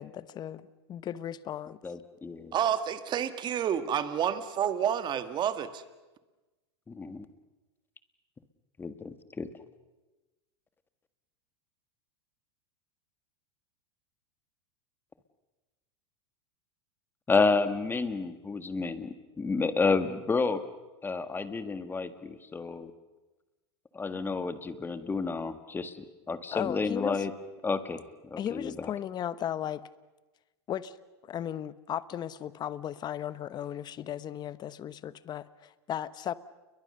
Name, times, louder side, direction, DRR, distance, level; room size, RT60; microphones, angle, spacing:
voice 1, 0.0-1.8 26.5-27.2 28.4-29.8 30.7-31.0 31.2-36.3, left 10 dB, 30° left, 16 dB, 1.0 m, -36 dB
voice 2, 1.8-2.5 6.9-7.3 8.8-9.5 17.3-20.6 21.0-22.9 23.9-26.0 26.3-27.3 27.6-28.9, left 4 dB, 15° left, 10 dB, 1.6 m, -30 dB
voice 3, 2.5-5.8, right 9 dB, 30° right, 10 dB, 1.8 m, -29 dB
30.0 x 22.5 x 6.7 m, 1.2 s
supercardioid pair, 125°, 15 cm